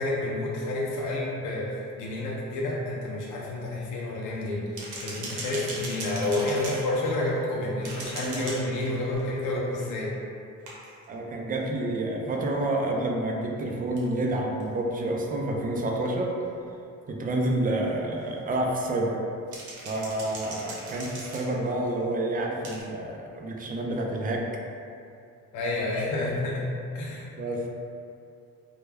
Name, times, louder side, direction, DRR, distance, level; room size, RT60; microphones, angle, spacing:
voice 1, 0.0-10.1 25.5-26.7 26.9-27.3, left 2 dB, 90° left, -4 dB, 0.5 m, -29 dB
sound 1, 4.8-7.5 7.8-9.3 10.7-11.0 14.0-14.1 14.6-14.7 16.4-16.5 19.5-21.9 22.6-22.8, right 2 dB, 85° right, 0.7 m, -39 dB
voice 2, 11.1-16.3 17.1-19.2 19.9-24.4 27.4-27.7, right 1 dB, 30° right, 0 dB, 0.4 m, -29 dB
2.2 x 2.1 x 3.2 m, 2.5 s
cardioid pair, 90°, 30 cm